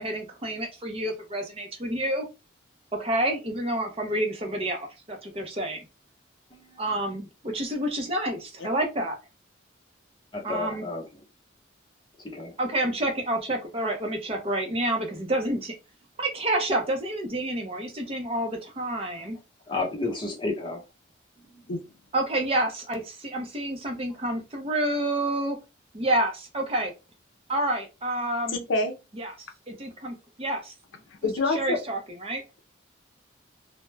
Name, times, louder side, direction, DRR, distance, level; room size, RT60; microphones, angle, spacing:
voice 1, 0.0-2.3 2.9-5.8 6.8-9.2 10.4-10.9 12.6-15.7 16.2-19.4 22.1-25.6 25.9-26.9 27.5-28.6 29.1-29.3 29.7-30.7 31.2-32.4, right 1 dB, 30° right, 0.5 m, -29 dB
voice 2, 10.3-11.0 12.3-12.5 19.7-20.8 23.9-24.0, left 3 dB, 25° left, 0.7 m, -31 dB
voice 3, 28.5-28.9 31.2-31.8, left 2 dB, 70° left, 0.5 m, -26 dB
2.2 x 2.0 x 3.2 m
head